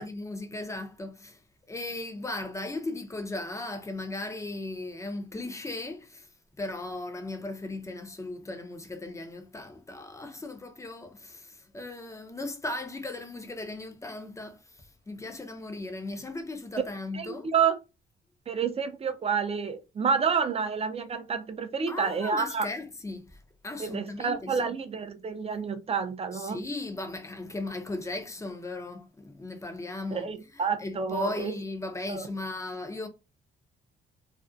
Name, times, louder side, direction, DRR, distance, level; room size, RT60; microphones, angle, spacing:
voice 1, 0.0-1.4 1.7-6.3 6.6-17.5 21.9-24.7 26.3-33.1, left 2 dB, 15° left, 0.6 m, -37 dB
voice 2, 17.1-17.8 18.5-22.7 23.8-26.6 30.1-31.5 32.1-32.3, right 6 dB, 30° right, 0.5 m, -29 dB
2.5 x 2.1 x 2.4 m
cardioid pair, 90°, 20 cm